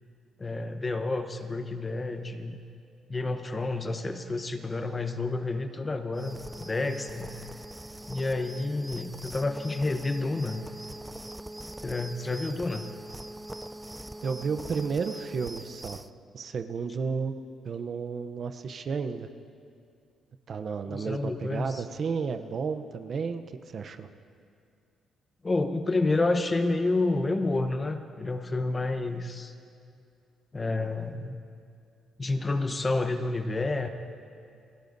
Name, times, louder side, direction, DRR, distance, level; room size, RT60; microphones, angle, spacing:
voice 1, 0.4-2.6 3.1-7.4 8.1-10.6 11.8-12.9 20.9-21.8 25.4-29.5 30.5-31.3 32.2-33.9, left 2 dB, 25° left, 8 dB, 0.8 m, -29 dB
sound 1, 6.1-16.1, right 1 dB, 10° right, 0.3 m, -42 dB
voice 2, 12.3-12.6 14.2-16.0 16.3-17.3 17.6-19.3 20.5-24.1, right 5 dB, 50° right, 9 dB, 0.7 m, -32 dB
29.5 x 12.0 x 2.6 m, 2.4 s
cardioid pair, 90°, 0 cm